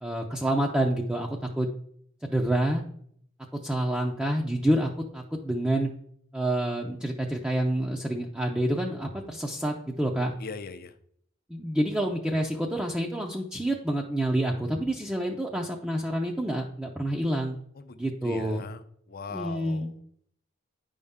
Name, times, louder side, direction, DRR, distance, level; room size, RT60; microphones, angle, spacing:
voice 1, 0.0-1.7 2.2-2.8 3.5-5.9 6.3-10.3 11.5-17.6 18.0-18.6 19.3-19.9, right 1 dB, 5° right, -1 dB, 0.6 m, -28 dB
voice 2, 10.4-10.9 17.8-18.0 18.2-18.8 19.1-19.9, left 4 dB, 45° left, 10 dB, 0.6 m, -39 dB
9.5 x 5.5 x 3.6 m, 0.66 s
head